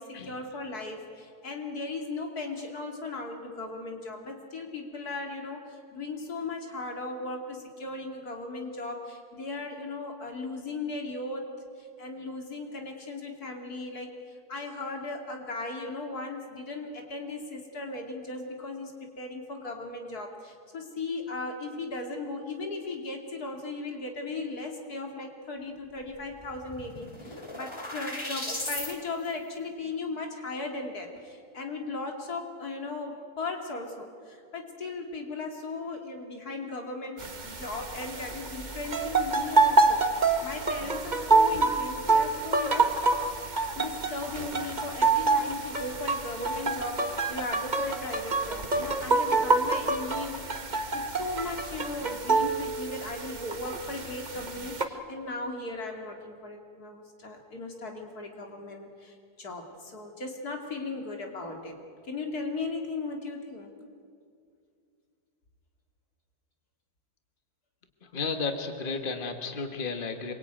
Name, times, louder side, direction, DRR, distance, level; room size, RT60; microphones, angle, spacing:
voice 1, 0.0-11.5 11.8-43.0 43.8-63.7, left 3 dB, 80° left, 3 dB, 3.1 m, -37 dB
sound 1, 26.1-26.2 26.4-28.9, left 1 dB, 20° left, 2.7 m, -37 dB
sound 2, 37.2-54.8, right 3 dB, 30° right, 1.4 m, -27 dB
voice 2, 68.0-70.3, left 4 dB, 35° left, 6 dB, 1.8 m, -33 dB
26.0 x 23.0 x 9.1 m, 2.3 s
omnidirectional pair, 1.6 m